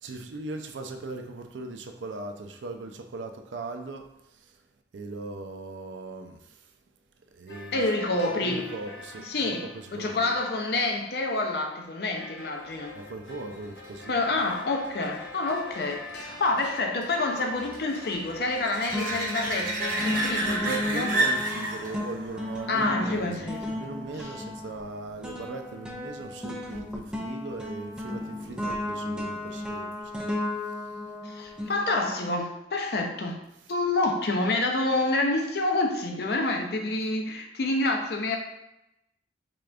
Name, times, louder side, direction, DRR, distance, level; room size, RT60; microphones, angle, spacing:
voice 1, 0.0-4.6 4.9-6.7 7.3-7.8 8.2-10.3 12.9-14.4 20.0-31.0, right 2 dB, 85° right, 5 dB, 0.4 m, -40 dB
sound 1, 7.5-20.6, left 2 dB, 80° left, 1.1 m, -45 dB
voice 2, 7.7-8.7 9.2-9.7 9.9-13.0 14.1-21.1 22.7-23.8 24.2-24.3 31.2-33.4 33.7-38.4, left 2 dB, 60° left, 3 dB, 0.5 m, -28 dB
sound 2, 13.0-24.3 29.9-30.0, right 2 dB, 50° right, 0.8 m, -33 dB
sound 3, 18.1-18.6 18.9-32.3, left 1 dB, 5° right, 0.4 m, -34 dB
3.7 x 3.3 x 2.4 m, 0.86 s
head